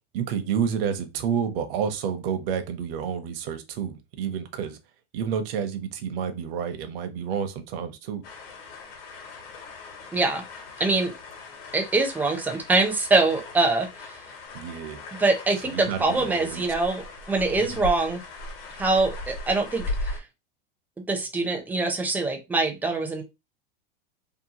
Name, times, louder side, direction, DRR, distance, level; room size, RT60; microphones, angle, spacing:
voice 1, 0.1-4.8 5.1-8.2 14.5-15.0 15.6-16.6 17.6-17.8, right 7 dB, 65° right, 0.7 m, -29 dB
sound 1, 8.2-20.2, left 2 dB, 65° left, 1.1 m, -38 dB
voice 2, 10.1-10.4 10.8-11.1 11.7-13.9 15.1-17.0 17.3-18.2 18.8-20.2 21.1-23.2, right 3 dB, 5° right, 0.4 m, -24 dB
2.8 x 2.2 x 2.7 m
supercardioid pair, 130°, 31 cm